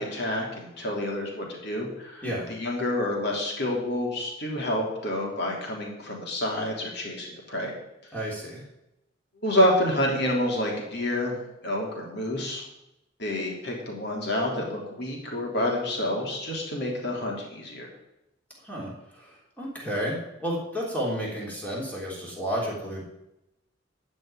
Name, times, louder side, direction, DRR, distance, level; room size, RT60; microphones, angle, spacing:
voice 1, 0.0-7.7 9.4-11.4 11.6-12.6 13.2-17.9, left 1 dB, 60° left, -1 dB, 3.4 m, -28 dB
voice 2, 8.1-8.6 18.6-19.2 19.6-23.0, equal, 10° left, -4 dB, 3.5 m, -31 dB
12.5 x 5.4 x 9.1 m, 0.89 s
head